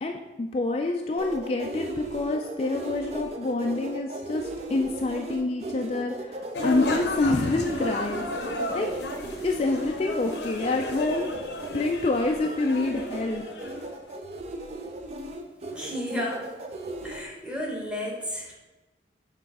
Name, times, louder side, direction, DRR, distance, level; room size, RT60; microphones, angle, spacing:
voice 1, 0.0-8.9 9.4-11.3 11.7-13.5, left 2 dB, 35° left, 2 dB, 0.3 m, -27 dB
sound 1, 1.2-17.2, right 2 dB, 35° right, 0.4 m, -37 dB
sound 2, 6.5-14.0, left 2 dB, 70° left, 0.7 m, -34 dB
voice 2, 15.7-16.5 17.0-18.6, left 1 dB, 5° right, -2 dB, 1.0 m, -32 dB
6.9 x 3.1 x 4.7 m, 1.1 s
head